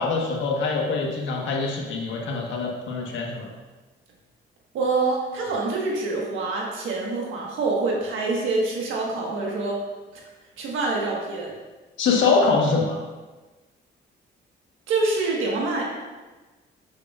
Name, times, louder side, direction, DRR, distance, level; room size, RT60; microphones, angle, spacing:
voice 1, 0.0-3.5 12.0-13.0, left 4 dB, 75° left, -1 dB, 1.4 m, -24 dB
voice 2, 4.7-9.8 10.6-11.5 14.9-15.8, right 3 dB, 85° right, -2 dB, 1.4 m, -25 dB
6.8 x 5.9 x 2.4 m, 1.2 s
cardioid pair, 90°, 20 cm